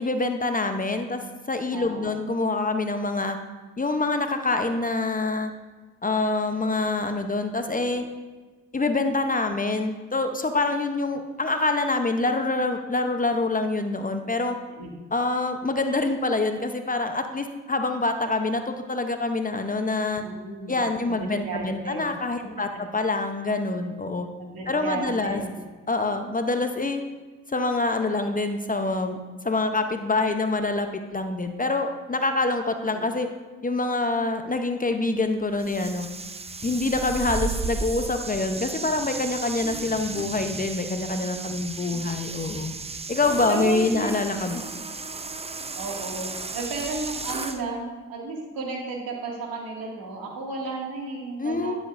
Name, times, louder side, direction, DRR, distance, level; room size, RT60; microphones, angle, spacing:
voice 1, 0.0-3.4 3.8-5.5 6.0-8.0 8.7-14.6 15.1-20.2 20.7-24.3 24.7-25.4 25.9-27.0 27.5-29.2 29.4-33.3 33.6-36.1 36.6-42.7 43.1-44.6 51.4-51.8, left 3 dB, 20° left, 6 dB, 0.8 m, -26 dB
voice 2, 1.7-2.1 7.7-7.8 14.8-14.9 20.2-22.1 24.4-25.6 32.9-33.0 42.0-42.1 43.5-44.1 45.7-51.8, right 3 dB, 70° right, -2 dB, 2.3 m, -33 dB
sound 1, 35.6-47.6, right 4 dB, 15° right, 0.6 m, -34 dB
11.0 x 7.3 x 2.6 m, 1.3 s
hypercardioid pair, 50°, 37 cm